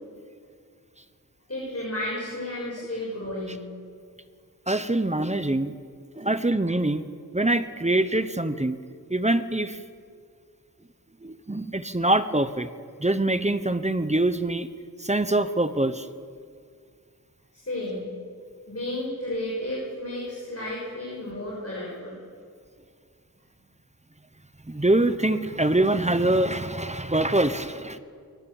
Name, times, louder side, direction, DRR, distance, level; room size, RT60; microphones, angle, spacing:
voice 1, 1.5-3.7 17.5-18.1 18.7-22.2, left 1 dB, 40° left, -4 dB, 6.8 m, -32 dB
voice 2, 4.7-5.7 6.2-7.0 7.3-8.8 9.1-9.8 11.2-12.7 13.0-14.7 15.0-16.1 24.7-28.0, right 2 dB, 20° right, 12 dB, 1.0 m, -24 dB
23.0 x 19.5 x 7.3 m, 2.2 s
wide cardioid pair, 70°, 36 cm